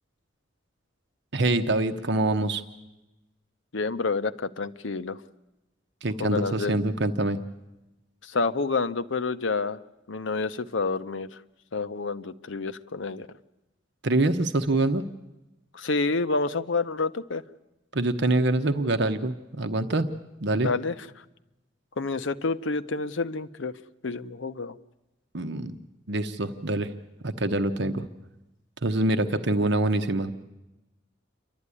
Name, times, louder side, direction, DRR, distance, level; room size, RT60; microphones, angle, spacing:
voice 1, 1.3-2.6 6.0-7.4 14.0-15.0 17.9-20.1 20.4-20.7 25.3-25.7 26.1-26.9 27.2-28.1 28.8-30.3, right 2 dB, 60° right, 8 dB, 1.0 m, -25 dB
voice 2, 3.7-5.2 6.2-6.7 8.2-9.8 10.1-11.3 11.7-13.3 15.7-17.4 20.6-20.9 22.0-23.7 24.0-24.8, left 3 dB, 75° left, 11 dB, 0.8 m, -28 dB
28.5 x 12.5 x 9.8 m, 1.0 s
head